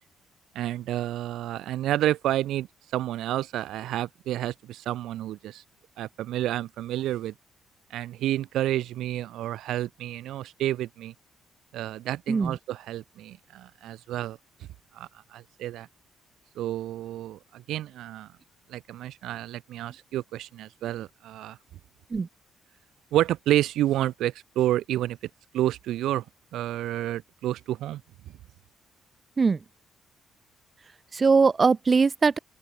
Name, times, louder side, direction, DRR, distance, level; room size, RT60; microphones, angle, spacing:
voice 1, 0.5-2.7 2.9-5.6 6.0-7.3 7.9-11.1 11.7-14.4 14.9-15.9 16.6-18.3 18.7-21.6 23.1-25.2 25.5-26.2 26.5-28.0, right 13 dB, 85° right, 1.4 m, -29 dB
voice 2, 31.1-32.4, right 4 dB, 35° right, 0.6 m, -21 dB
open air
cardioid pair, 90°, 0 cm